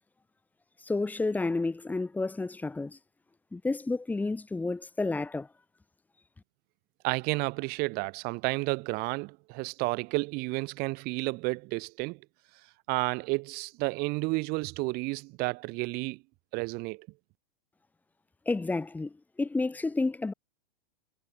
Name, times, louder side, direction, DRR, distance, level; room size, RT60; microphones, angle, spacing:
voice 1, 0.8-3.0 3.5-5.5 18.5-19.1 19.4-20.3, left 3 dB, 5° left, 7.5 m, -30 dB
voice 2, 7.0-12.2 12.9-16.2 16.5-17.1, right 26 dB, 30° right, 5.1 m, -31 dB
supercardioid pair, 165°, 29 cm